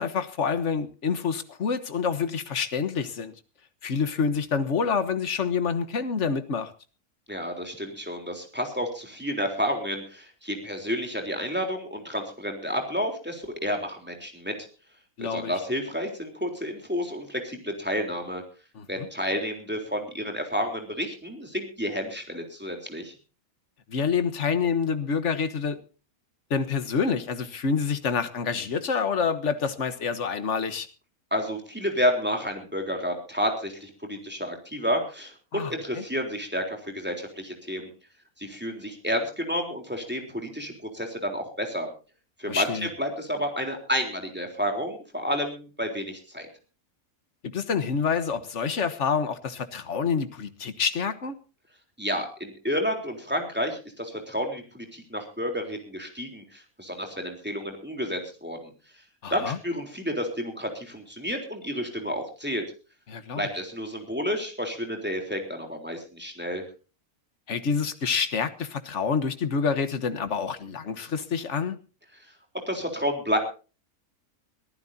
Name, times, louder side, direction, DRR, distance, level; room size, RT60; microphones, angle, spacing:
voice 1, 0.0-3.3 3.8-6.7 15.2-15.5 18.7-19.1 23.9-25.8 26.5-30.9 35.5-36.0 42.5-42.9 47.4-51.4 59.2-59.6 63.1-63.5 67.5-71.8, left 6 dB, 55° left, 1.6 m, -27 dB
voice 2, 7.3-14.6 15.2-18.4 18.9-23.1 31.3-37.9 38.4-41.9 42.4-46.5 52.0-58.7 59.3-62.6 63.4-66.6 72.7-73.4, equal, 5° right, 3.7 m, -30 dB
23.0 x 15.0 x 2.8 m
omnidirectional pair, 1.5 m